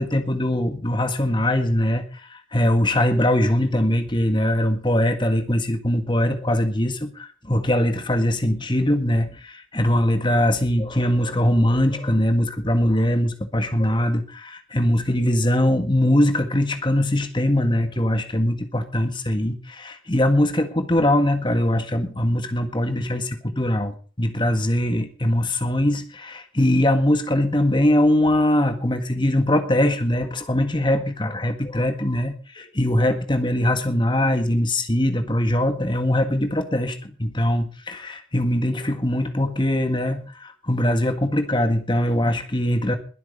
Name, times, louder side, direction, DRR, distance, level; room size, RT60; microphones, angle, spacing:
voice 1, 0.0-43.0, left 1 dB, 25° left, 8 dB, 1.7 m, -22 dB
21.5 x 7.9 x 5.3 m, 0.38 s
head